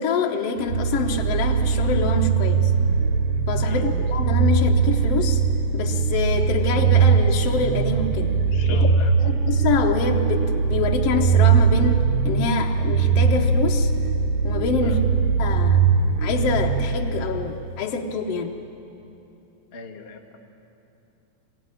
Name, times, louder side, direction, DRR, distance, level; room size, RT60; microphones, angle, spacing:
voice 1, 0.0-2.7 3.5-5.4 5.7-8.3 8.7-8.9 9.2-13.9 14.4-15.0 15.4-15.8 16.2-18.5, left 5 dB, 65° left, 1 dB, 1.7 m, -26 dB
sound 1, 0.6-17.5, right 6 dB, 70° right, 1.3 m, -20 dB
voice 2, 8.5-9.1 14.8-15.0 19.7-20.4, left 4 dB, 45° left, 2 dB, 0.7 m, -37 dB
23.0 x 17.0 x 9.9 m, 2.9 s
omnidirectional pair, 3.7 m